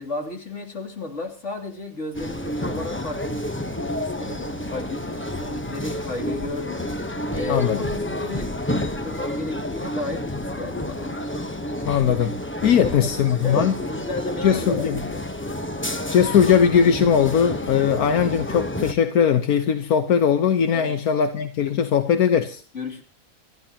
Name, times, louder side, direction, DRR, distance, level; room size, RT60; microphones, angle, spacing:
voice 1, 0.0-3.7 4.2-6.9 7.3-8.5 9.0-11.2 12.6-15.3 20.7-21.0 22.7-23.0, left 2 dB, 50° left, 3.2 m, -33 dB
sound 1, 2.1-18.9, left 1 dB, 10° left, 0.7 m, -30 dB
voice 2, 7.5-7.8 11.9-12.3 12.6-13.7 14.4-15.0 16.1-22.6, left 8 dB, 80° left, 1.5 m, -19 dB
29.0 x 14.0 x 2.9 m
omnidirectional pair, 1.5 m